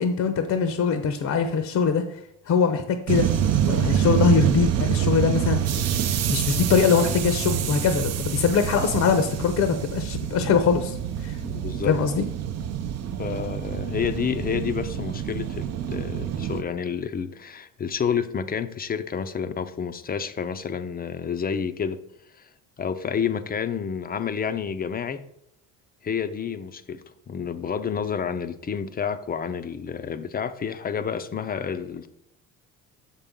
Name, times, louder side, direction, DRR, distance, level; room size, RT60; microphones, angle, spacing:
voice 1, 0.0-2.0 2.5-3.3 3.6-5.6 6.3-11.0 11.2-11.4 11.8-12.3, left 6 dB, 50° left, 0.8 m, -22 dB
sound 1, 3.1-16.6, right 9 dB, 45° right, 0.6 m, -26 dB
voice 2, 11.4-12.0 13.2-22.0 22.4-22.5 22.8-25.2 26.0-32.1, left 7 dB, 25° left, 0.5 m, -29 dB
6.5 x 5.6 x 3.6 m
supercardioid pair, 90°, 37 cm